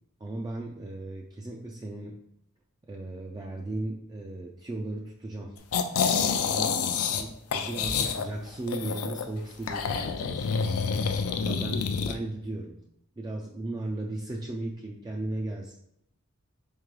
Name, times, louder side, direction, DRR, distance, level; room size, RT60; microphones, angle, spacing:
voice 1, 0.2-2.2 2.9-5.6 6.1-10.7 11.3-12.8 13.2-15.7, right 2 dB, 20° right, -1 dB, 0.3 m, -36 dB
sound 1, 5.7-7.2 7.5-9.3 9.7-12.2, left 6 dB, 75° left, 0.4 m, -28 dB
3.7 x 3.6 x 3.1 m, 0.79 s
head